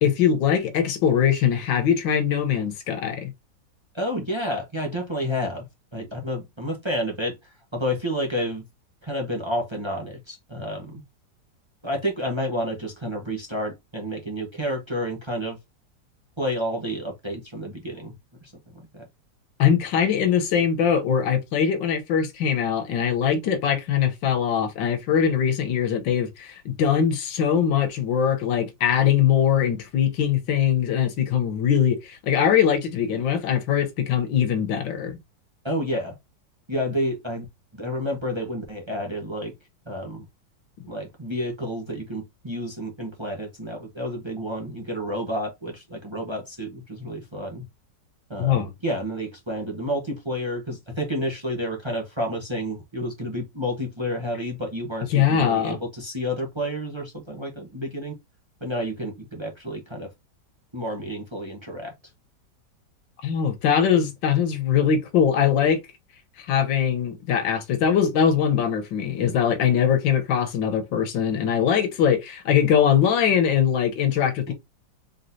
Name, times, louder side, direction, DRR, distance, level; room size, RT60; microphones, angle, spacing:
voice 1, 0.0-3.3 19.6-35.2 48.4-48.7 55.1-55.8 63.2-65.8 66.4-74.5, left 8 dB, 90° left, 1.6 m, -22 dB
voice 2, 3.9-5.7 5.9-8.6 9.0-11.0 11.8-15.6 16.4-18.1 18.4-19.1 35.6-36.2 36.7-37.4 37.7-39.5 39.9-40.3 40.9-47.6 48.3-58.2 58.6-60.1 60.7-61.9, equal, 20° right, 1.0 m, -30 dB
4.1 x 3.7 x 2.7 m
omnidirectional pair, 2.0 m